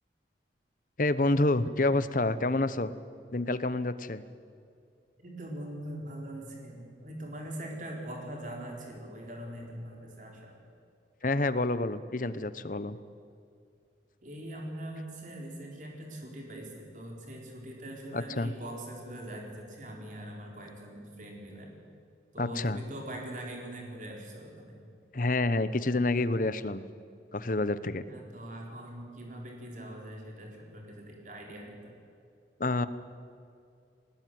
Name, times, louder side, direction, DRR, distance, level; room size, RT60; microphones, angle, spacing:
voice 1, 1.0-2.9 3.3-4.2 11.2-13.0 18.1-18.5 22.4-22.8 25.1-26.8 27.3-28.0 32.6-32.9, left 2 dB, 45° left, 14 dB, 0.9 m, -28 dB
voice 2, 5.2-10.5 14.2-21.7 22.3-24.8 28.1-31.9, right 1 dB, 45° right, 0 dB, 4.3 m, -42 dB
20.0 x 19.0 x 9.4 m, 2.4 s
head